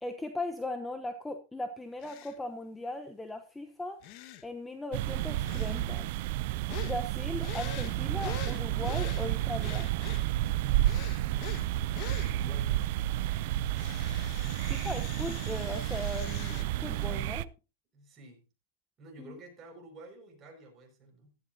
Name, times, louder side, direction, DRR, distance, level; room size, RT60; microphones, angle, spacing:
voice 1, 0.0-4.0 4.4-6.1 6.8-9.9 14.7-17.5 19.2-19.4, left 2 dB, 5° left, 0.9 m, -38 dB
sound 1, 2.0-2.4 4.0-4.5 5.4-5.8 6.7-7.0 7.4-9.3 9.6-10.3 10.8-11.7 11.9-12.3 13.7-16.6, left 11 dB, 40° left, 1.4 m, -44 dB
sound 2, 4.9-17.4, right 14 dB, 50° right, 0.5 m, -31 dB
voice 2, 11.3-12.9 17.9-18.5 19.0-21.4, right 2 dB, 25° right, 5.7 m, -51 dB
15.5 x 13.0 x 2.8 m
hypercardioid pair, 145°, 0 cm